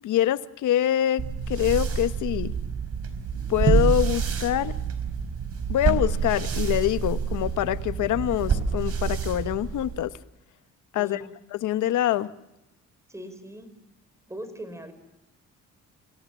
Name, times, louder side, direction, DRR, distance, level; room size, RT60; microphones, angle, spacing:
voice 1, 0.0-1.2 1.5-2.5 3.5-4.7 5.7-10.1 10.9-11.2 11.5-12.3, left 13 dB, 80° left, 13 dB, 1.2 m, -25 dB
sound 1, 1.2-10.1, right 6 dB, 50° right, 4.7 m, -27 dB
voice 2, 13.1-13.7 14.3-14.9, right 1 dB, 10° right, 10 dB, 5.4 m, -39 dB
29.5 x 17.5 x 7.4 m, 0.93 s
cardioid pair, 90°, 30 cm